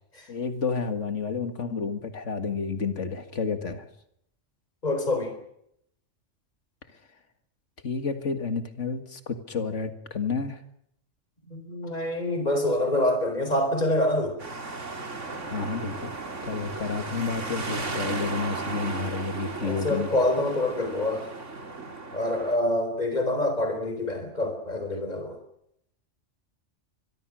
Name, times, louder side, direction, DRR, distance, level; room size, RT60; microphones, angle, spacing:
voice 1, 0.3-3.9 7.8-10.6 15.5-16.1 16.4-20.1, left 4 dB, 75° left, 8 dB, 2.2 m, -30 dB
voice 2, 4.8-5.3 11.5-14.4 19.6-21.3 22.1-25.4, left 1 dB, 35° left, 6 dB, 4.5 m, -26 dB
sound 1, 14.4-22.6, right 3 dB, 90° right, 2.8 m, -35 dB
24.0 x 22.5 x 6.3 m, 0.73 s
omnidirectional pair, 1.2 m